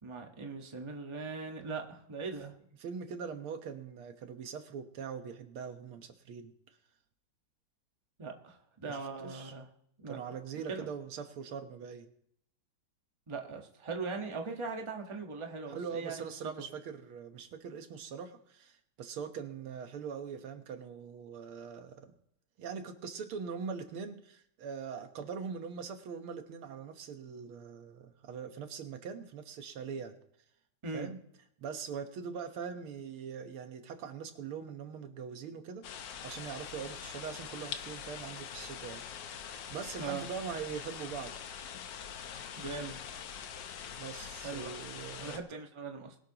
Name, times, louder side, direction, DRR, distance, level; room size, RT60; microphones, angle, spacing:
voice 1, 0.0-2.5 8.2-9.7 10.0-10.2 10.7-10.9 13.3-16.2 30.8-31.1 40.0-40.3 42.6-43.0 44.4-44.7 45.2-46.2, right 4 dB, 15° right, 2 dB, 1.1 m, -40 dB
voice 2, 2.8-6.5 8.9-9.5 10.1-12.1 15.7-22.2 22.6-30.2 30.9-31.2 31.6-41.3 44.0-45.4, right 6 dB, 85° right, 7 dB, 2.1 m, -42 dB
sound 1, 35.8-45.4, left 8 dB, 65° left, 1.5 m, -44 dB
21.5 x 12.0 x 2.9 m, 0.70 s
omnidirectional pair, 2.3 m